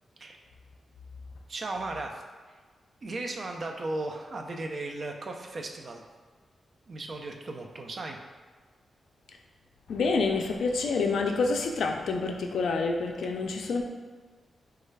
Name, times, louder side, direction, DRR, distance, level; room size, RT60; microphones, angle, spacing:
voice 1, 1.5-2.2 2.5-2.6 3.0-6.0 6.9-8.2, right 2 dB, 35° right, 3 dB, 0.3 m, -36 dB
voice 2, 9.9-13.8, left 4 dB, 80° left, 3 dB, 0.3 m, -27 dB
3.1 x 2.3 x 3.2 m, 1.4 s
wide cardioid pair, 180°, 0 cm